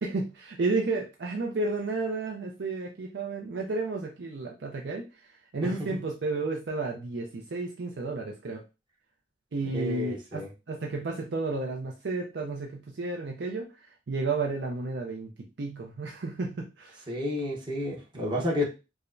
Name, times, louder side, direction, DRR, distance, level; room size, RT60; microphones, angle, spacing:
voice 1, 0.0-8.6 9.5-17.1, right 3 dB, 70° right, 1 dB, 0.5 m, -32 dB
voice 2, 9.7-10.5 17.1-18.6, left 1 dB, 25° right, -2 dB, 1.0 m, -31 dB
4.7 x 2.1 x 2.6 m, 0.29 s
head